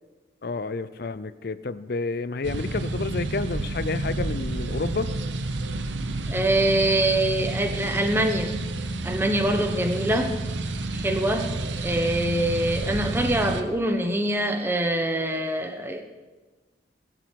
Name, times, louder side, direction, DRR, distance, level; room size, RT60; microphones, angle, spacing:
voice 1, 0.4-5.1, left 3 dB, 55° left, 15 dB, 0.5 m, -30 dB
sound 1, 2.4-13.6, right 2 dB, 90° right, 0.9 m, -30 dB
voice 2, 6.3-8.5 9.0-10.3 10.9-11.5 11.8-16.0, right 1 dB, 10° right, 4 dB, 1.1 m, -24 dB
21.0 x 7.8 x 4.6 m, 1.3 s
head